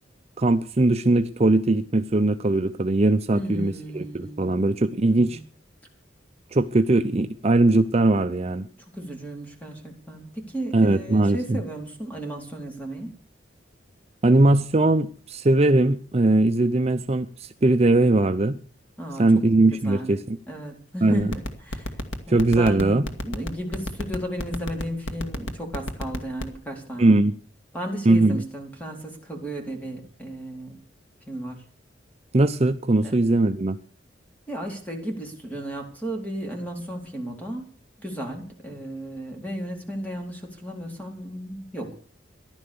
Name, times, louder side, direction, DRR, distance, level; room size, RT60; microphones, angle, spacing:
voice 1, 0.4-5.4 6.5-8.7 10.7-11.6 14.2-18.6 19.2-20.4 21.0-21.3 22.3-23.0 27.0-27.3 28.1-28.4 32.3-33.8, right 2 dB, 35° right, 8 dB, 0.6 m, -20 dB
voice 2, 3.3-4.5 5.1-5.4 8.9-13.2 19.0-19.4 19.8-20.1 20.5-22.0 22.3-27.2 27.7-30.8 31.3-31.6 33.0-33.1 34.5-37.7 38.0-42.0, right 1 dB, 10° left, 2 dB, 3.8 m, -34 dB
sound 1, 21.2-26.6, left 1 dB, 85° left, 1.9 m, -29 dB
15.0 x 11.5 x 7.0 m, 0.43 s
head